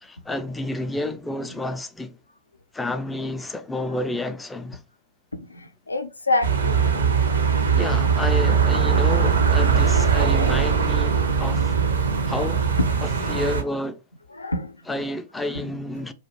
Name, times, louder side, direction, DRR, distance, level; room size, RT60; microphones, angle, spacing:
voice 1, 0.0-2.2 2.7-4.8 7.7-11.8 12.3-12.7 13.0-14.0 14.9-16.1, left 1 dB, 10° left, 0.3 m, -30 dB
voice 2, 5.3-7.0 12.1-12.2 13.0-13.4 14.4-14.7, left 2 dB, 80° left, 0.4 m, -28 dB
sound 1, 6.4-13.6, right 6 dB, 70° right, 0.5 m, -20 dB
2.4 x 2.2 x 2.8 m
figure-of-eight pair, 100°, 0 cm